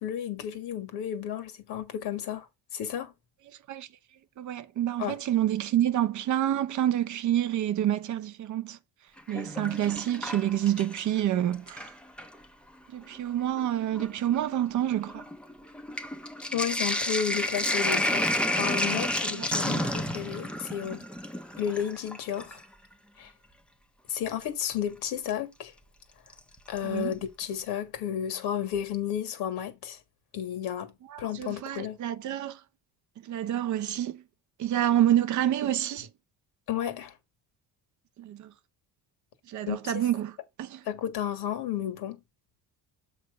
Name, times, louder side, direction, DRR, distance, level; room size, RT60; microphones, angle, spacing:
voice 1, 0.0-2.5 2.7-3.1 5.0-5.2 16.5-21.1 21.6-22.6 23.2-23.3 24.1-25.7 26.7-30.0 30.3-30.9 31.2-32.0 36.7-37.1 39.7-39.9 40.9-42.2, left 9 dB, 80° left, 1.7 m, -32 dB
voice 2, 4.4-8.8 9.3-11.9 12.9-15.2 19.4-19.5 26.8-27.1 31.1-32.6 33.3-34.2 34.6-36.1 38.2-38.5 39.5-40.8, right 11 dB, 50° right, 0.7 m, -28 dB
Sink (filling or washing), 9.2-11.2 11.5-12.4 13.2-13.3 13.5-22.6 24.4-24.5 26.3-26.8 27.1-27.2 27.4-27.5, left 1 dB, 5° left, 0.5 m, -31 dB
7.5 x 3.2 x 5.1 m
cardioid pair, 160°, 39 cm